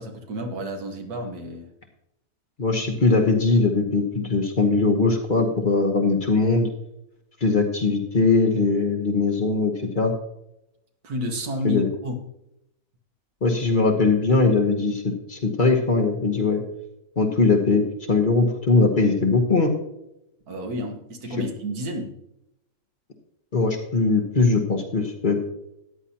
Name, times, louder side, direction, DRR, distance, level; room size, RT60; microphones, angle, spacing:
voice 1, 0.0-1.7 11.0-12.2 20.5-22.1, equal, 75° right, 4 dB, 1.9 m, -31 dB
voice 2, 2.6-6.7 7.4-10.1 11.6-11.9 13.4-16.6 17.2-19.7 23.5-25.4, left 3 dB, 35° left, 2 dB, 1.2 m, -21 dB
14.0 x 9.8 x 2.9 m, 0.83 s
omnidirectional pair, 1.6 m